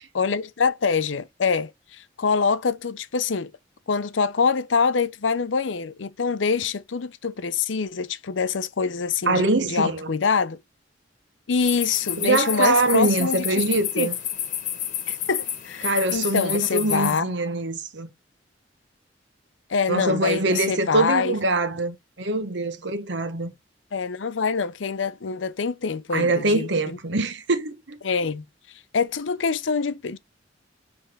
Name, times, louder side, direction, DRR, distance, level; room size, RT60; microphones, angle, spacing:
voice 1, 0.1-3.5 3.9-10.6 11.5-13.4 13.9-14.1 15.1-17.2 19.7-21.3 23.9-27.0 28.0-28.4 28.9-30.2, left 5 dB, 85° left, 0.6 m, -25 dB
voice 2, 9.3-10.1 12.2-14.1 15.8-18.1 19.9-23.5 26.1-28.0, right 2 dB, 70° right, 1.1 m, -23 dB
sound 1, 11.6-17.2, left 10 dB, 45° left, 1.2 m, -30 dB
9.5 x 3.5 x 3.4 m
head